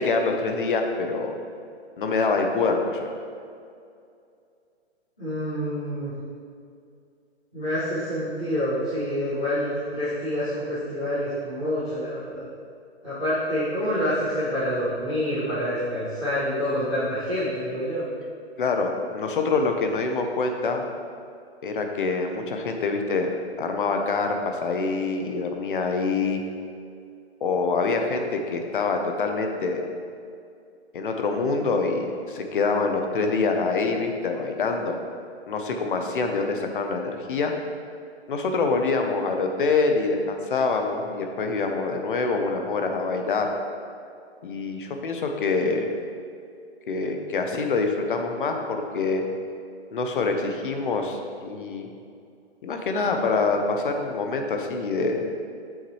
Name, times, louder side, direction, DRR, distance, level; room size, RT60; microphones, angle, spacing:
voice 1, 0.0-1.4 2.0-3.1 18.6-20.9 21.6-23.3 23.6-26.4 27.4-29.8 30.9-35.0 35.5-37.5 38.3-43.5 44.4-45.9 46.9-49.2 49.9-51.9 52.6-55.3, left 4 dB, 50° left, 4 dB, 0.9 m, -25 dB
voice 2, 5.2-6.1 7.5-12.4 13.0-18.0, equal, 5° left, -19 dB, 0.4 m, -27 dB
8.4 x 7.3 x 3.2 m, 2.4 s
hypercardioid pair, 160°, 33 cm